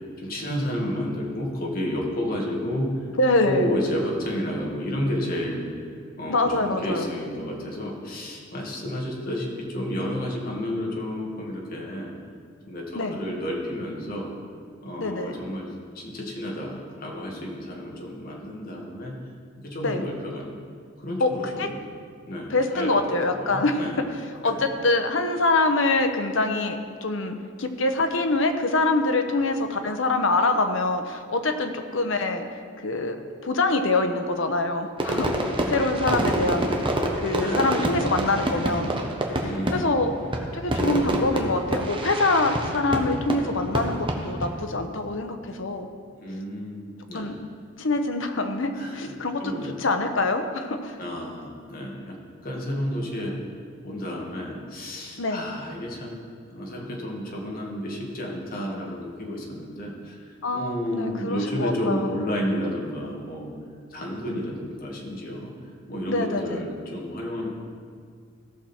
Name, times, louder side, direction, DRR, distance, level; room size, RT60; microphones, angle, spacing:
voice 1, 0.2-3.1 3.4-5.9 6.2-12.2 12.7-14.3 14.8-19.2 19.6-20.6 21.0-21.9 22.3-24.0 24.4-24.6 37.4-37.9 39.4-40.1 46.2-47.4 48.7-49.1 49.4-49.8 51.0-53.4 53.8-56.2 56.5-63.5 63.9-65.6 65.9-67.5, equal, 50° left, -2 dB, 1.9 m, -31 dB
voice 2, 3.2-3.6 6.3-7.1 12.9-13.1 15.0-15.3 19.8-20.0 21.2-21.3 21.6-21.7 22.5-23.8 24.4-32.4 32.8-33.2 33.4-35.3 35.7-36.6 37.2-38.9 39.7-40.1 40.5-45.8 47.1-47.3 47.8-49.5 49.8-51.0 55.2-55.4 60.4-62.2 66.1-66.6, left 2 dB, 70° left, 6 dB, 0.9 m, -24 dB
Fireworks, 35.0-44.5, right 1 dB, 25° right, 1.1 m, -27 dB
16.5 x 6.3 x 4.4 m, 2.1 s
head